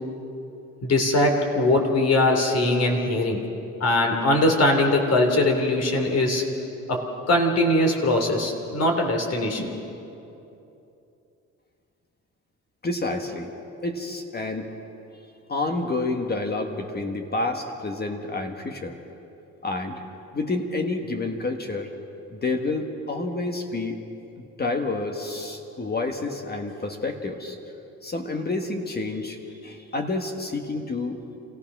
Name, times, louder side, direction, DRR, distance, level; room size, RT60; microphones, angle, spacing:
voice 1, 0.8-3.4 3.8-6.4 6.9-7.0 7.3-9.8, left 1 dB, 55° left, 2 dB, 3.2 m, -21 dB
voice 2, 12.8-13.5 13.8-14.7 15.5-19.0 19.6-20.0 20.3-21.9 22.3-24.0 24.4-27.6 28.0-31.2, left 2 dB, 30° left, 3 dB, 1.7 m, -29 dB
26.5 x 16.0 x 6.2 m, 2.8 s
cardioid pair, 90°, 30 cm